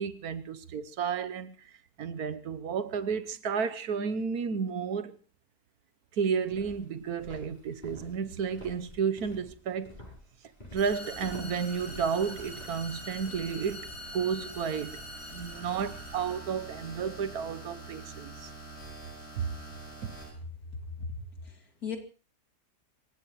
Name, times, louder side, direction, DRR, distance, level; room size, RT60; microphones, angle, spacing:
voice 1, 0.0-5.2 6.1-9.9 10.7-15.0 15.3-18.5 19.4-19.5 20.0-20.1, right 6 dB, 70° right, 1.4 m, -32 dB
Walk footsteps, 6.4-13.5, left 1 dB, 30° left, 7.9 m, -49 dB
sound 1, 10.8-20.3, right 1 dB, 80° left, 6.2 m, -44 dB
voice 2, 21.0-22.0, left 5 dB, 65° left, 3.0 m, -38 dB
26.5 x 16.0 x 3.1 m
omnidirectional pair, 1.7 m